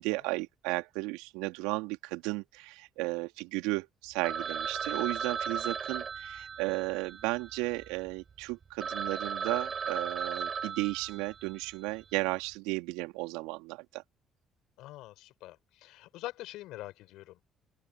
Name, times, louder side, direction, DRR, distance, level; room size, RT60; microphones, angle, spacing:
voice 1, 0.0-14.0, right 24 dB, 75° right, 3.0 m, -34 dB
Telephone, 4.2-8.0 8.5-8.6 8.8-11.7, right 6 dB, 45° right, 7.0 m, -36 dB
voice 2, 14.8-17.4, left 17 dB, 70° left, 5.3 m, -44 dB
open air
hypercardioid pair, 55°, 0 cm